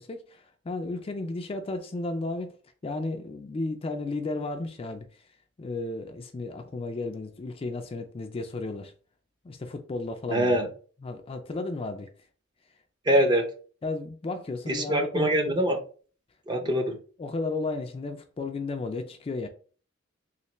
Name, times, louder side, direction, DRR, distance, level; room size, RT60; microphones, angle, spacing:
voice 1, 0.0-2.5 2.8-5.2 5.6-8.9 9.4-10.6 11.0-12.1 13.8-15.1 16.6-16.8 17.2-19.5, left 3 dB, 25° left, 0.3 m, -34 dB
voice 2, 10.3-10.7 13.1-13.5 14.7-15.8 16.5-16.9, right 1 dB, 20° right, 0.6 m, -23 dB
3.2 x 3.1 x 2.9 m
head